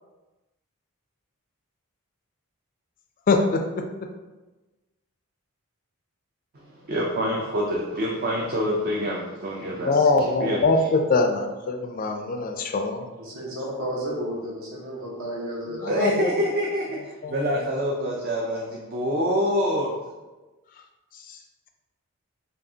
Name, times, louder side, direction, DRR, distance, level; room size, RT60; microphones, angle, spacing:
voice 1, 3.3-3.8 9.6-13.0 15.8-16.3 17.2-17.6, left 3 dB, 40° left, 5 dB, 0.3 m, -23 dB
voice 2, 6.5-10.6 15.9-19.9, equal, 45° right, -2 dB, 0.4 m, -26 dB
voice 3, 13.2-16.0, equal, 65° right, -4 dB, 1.2 m, -32 dB
5.0 x 2.4 x 2.7 m, 1.2 s
head